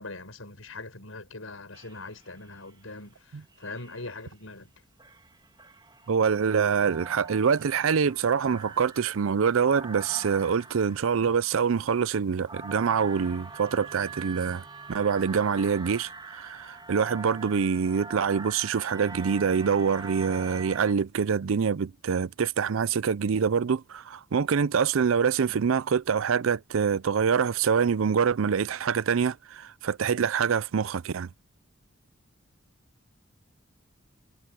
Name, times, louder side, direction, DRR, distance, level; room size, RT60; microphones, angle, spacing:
voice 1, 0.0-4.7, left 2 dB, 80° left, 6.6 m, -41 dB
sound 1, 1.7-2.5 3.5-4.3 5.0-20.9, right 4 dB, 20° right, 1.8 m, -44 dB
voice 2, 6.1-31.3, right 6 dB, 75° right, 0.5 m, -25 dB
head